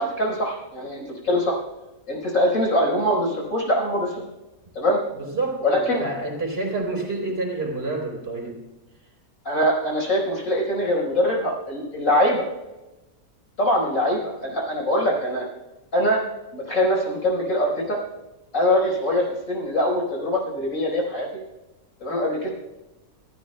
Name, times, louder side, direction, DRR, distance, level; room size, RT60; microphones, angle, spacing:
voice 1, 0.0-1.6 2.1-4.2 4.7-5.0 5.6-6.0 9.4-12.4 13.6-15.4 15.9-16.2 16.5-18.0 18.5-21.3 22.0-22.5, equal, 65° left, -1 dB, 5.1 m, -23 dB
voice 2, 5.1-8.6, right 2 dB, 40° right, 1 dB, 4.0 m, -28 dB
26.0 x 15.0 x 2.2 m, 1.1 s
omnidirectional pair, 1.5 m